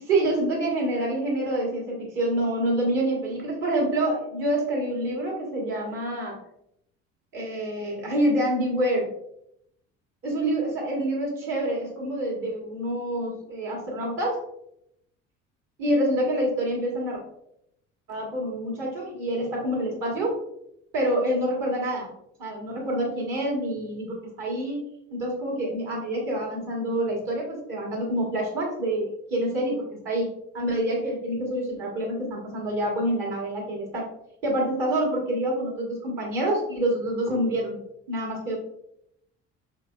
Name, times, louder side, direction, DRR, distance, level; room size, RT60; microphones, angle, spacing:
voice 1, 0.0-6.4 7.3-9.1 10.2-14.4 15.8-17.2 18.1-20.4 20.9-22.1 22.4-24.8 25.1-34.1 34.4-37.8 38.1-38.6, right 1 dB, 55° right, -3 dB, 1.5 m, -27 dB
3.7 x 3.0 x 2.3 m, 0.77 s
hypercardioid pair, 55°, 38 cm